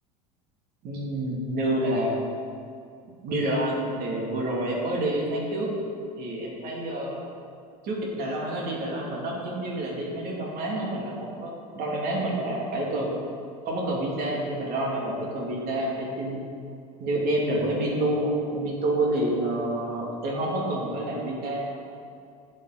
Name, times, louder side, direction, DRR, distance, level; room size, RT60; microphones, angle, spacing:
voice 1, 0.8-2.1 3.2-5.7 6.2-7.2 7.8-13.2 13.7-16.4 17.0-21.7, right 1 dB, 50° right, -2 dB, 2.6 m, -28 dB
11.5 x 7.6 x 4.0 m, 2.4 s
hypercardioid pair, 85°, 20 cm